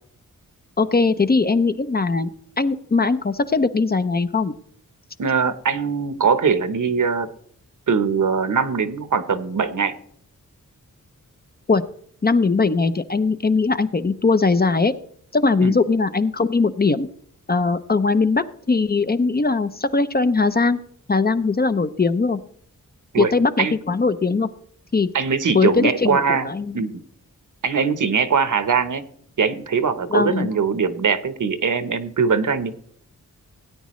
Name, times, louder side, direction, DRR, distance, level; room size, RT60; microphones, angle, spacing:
voice 1, 0.8-2.3 2.6-4.5 11.7-11.8 12.2-14.9 15.3-17.1 17.5-20.8 21.1-22.4 23.2-24.5 24.9-25.1 25.5-26.8 30.1-30.5, left 4 dB, 30° left, 11 dB, 0.6 m, -20 dB
voice 2, 5.2-7.3 7.9-9.9 15.6-15.8 23.1-23.3 23.6-23.7 25.1-26.5 26.7-27.0 27.6-29.0 29.4-32.8, right 5 dB, 65° right, 12 dB, 1.0 m, -21 dB
17.0 x 9.3 x 3.1 m, 0.62 s
wide cardioid pair, 90°, 33 cm